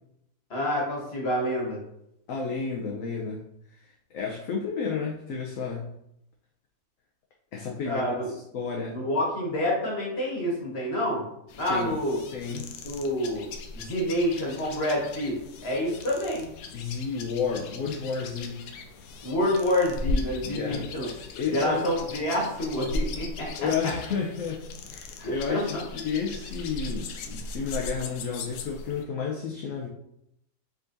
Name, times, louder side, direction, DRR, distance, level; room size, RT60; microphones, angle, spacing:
voice 1, 0.5-1.8 7.8-8.3 8.9-11.3 11.6-12.2 12.8-13.5 13.7-16.5 19.2-21.1 21.5-23.5 25.2-25.8, left 1 dB, 40° left, -3 dB, 1.6 m, -28 dB
voice 2, 2.3-5.9 7.5-8.1 8.5-9.0 11.7-12.0 12.3-12.7 16.7-18.7 20.4-20.9 21.3-21.8 23.6-29.9, left 5 dB, 65° left, -1 dB, 1.0 m, -31 dB
sound 1, 11.5-29.0, left 2 dB, 85° left, 1.1 m, -38 dB
4.8 x 3.9 x 2.5 m, 0.77 s
omnidirectional pair, 1.7 m